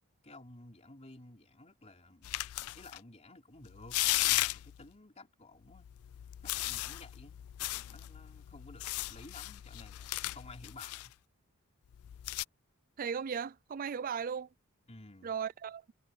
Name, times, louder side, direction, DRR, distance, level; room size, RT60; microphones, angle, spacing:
voice 1, 0.2-2.3 2.7-4.0 4.3-5.9 6.4-7.4 7.9-11.1 14.9-15.3, left 2 dB, 30° left, 3.3 m, -54 dB
sound 1, 2.2-3.0 3.7-4.9 5.7-11.1 11.9-12.4, left 18 dB, 75° left, 0.3 m, -36 dB
voice 2, 13.0-14.5 15.2-15.9, right 7 dB, 40° right, 0.3 m, -36 dB
head